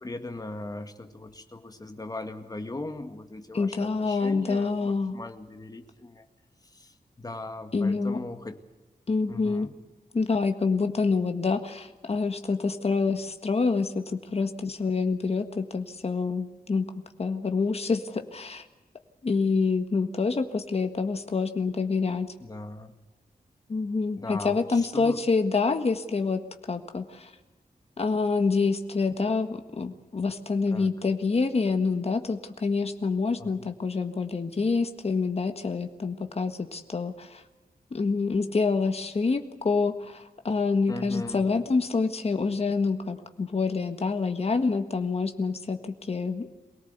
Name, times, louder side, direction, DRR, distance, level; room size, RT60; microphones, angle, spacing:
voice 1, 0.0-6.3 6.6-8.6 9.3-9.7 22.4-23.0 24.2-25.2 30.7-30.9 33.4-33.7 40.9-41.5, left 2 dB, 25° left, 7 dB, 1.9 m, -39 dB
voice 2, 3.5-5.1 7.7-8.2 9.1-9.7 10.1-16.9 17.2-18.6 19.2-22.3 23.7-27.3 28.0-37.4 37.9-46.5, left 4 dB, 40° left, 7 dB, 1.6 m, -27 dB
24.5 x 18.0 x 8.2 m, 1.1 s
wide cardioid pair, 150°, 16 cm